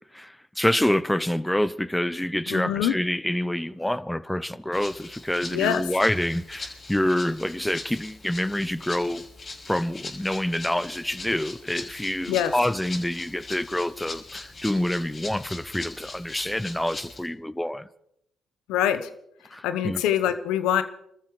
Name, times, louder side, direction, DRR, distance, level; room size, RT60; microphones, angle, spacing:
voice 1, 0.1-9.2 9.7-17.9 19.5-20.0, left 1 dB, 5° left, 0.8 m, -27 dB
voice 2, 2.5-3.0 5.5-5.8 12.3-12.5 18.7-19.1 19.6-20.8, left 10 dB, 80° left, 1.0 m, -24 dB
Rattle (instrument), 4.7-17.3, left 3 dB, 40° left, 5.8 m, -41 dB
28.5 x 14.0 x 3.3 m
hypercardioid pair, 50°, 0 cm